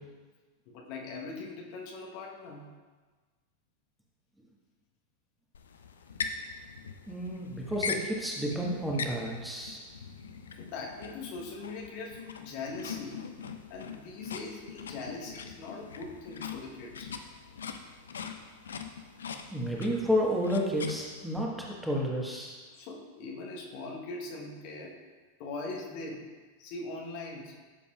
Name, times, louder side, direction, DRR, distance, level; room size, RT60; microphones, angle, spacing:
voice 1, 0.7-2.7 10.6-13.2 13.7-17.1 22.7-25.0 25.4-26.2 26.6-27.6, left 3 dB, 45° left, -1 dB, 1.1 m, -41 dB
sound 1, 5.5-21.4, left 6 dB, 65° left, 0.5 m, -42 dB
voice 2, 7.1-9.8 19.5-22.6, equal, 5° right, -2 dB, 1.4 m, -31 dB
12.5 x 7.0 x 2.4 m, 1.4 s
figure-of-eight pair, 90°, 0 cm